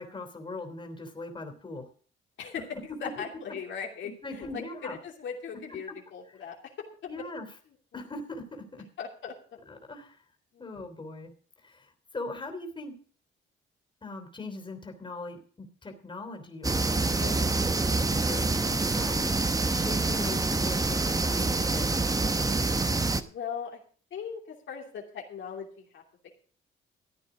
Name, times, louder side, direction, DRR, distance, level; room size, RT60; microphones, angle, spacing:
voice 1, 0.0-1.9 2.9-3.0 4.0-5.0 5.7-5.8 7.1-7.5 7.9-8.9 9.7-10.2 10.6-11.3 11.6-11.9 12.1-12.9 14.0-17.5 17.8-19.2 19.7-22.0, left 2 dB, 25° left, 5 dB, 3.1 m, -40 dB
voice 2, 3.0-6.6 7.9-8.0 9.0-9.3 10.5-10.7 17.2-17.5 23.3-23.8 24.1-26.0, left 6 dB, 70° left, 0 dB, 2.8 m, -39 dB
sound 1, 16.6-23.2, right 3 dB, 15° right, 1.0 m, -26 dB
14.0 x 8.9 x 4.9 m, 0.43 s
cardioid pair, 90°, 20 cm